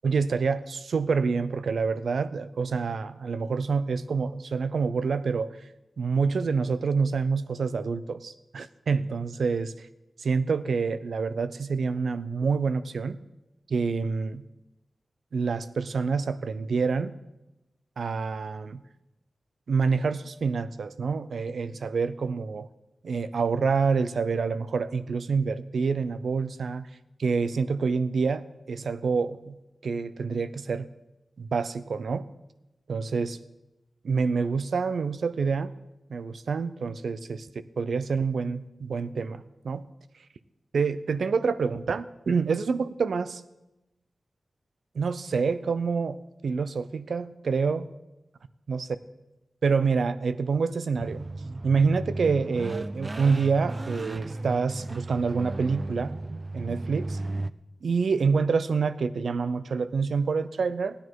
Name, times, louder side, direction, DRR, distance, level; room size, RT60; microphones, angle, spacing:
voice 1, 0.0-5.5 6.0-9.7 10.2-13.2 13.7-14.4 15.3-17.2 18.0-18.8 19.7-22.7 23.0-26.9 27.2-29.6 29.8-30.9 31.4-32.3 32.9-33.4 34.0-35.7 36.1-37.5 37.8-39.8 40.7-43.4 44.9-46.2 46.4-47.8 48.7-48.9 49.6-51.2 51.6-56.1 56.5-57.2 57.8-61.0, right 5 dB, 80° right, 14 dB, 0.6 m, -27 dB
sound 1, 50.9-57.5, right 2 dB, 30° right, 0.4 m, -35 dB
16.0 x 10.0 x 4.7 m, 0.97 s
wide cardioid pair, 90°, 0 cm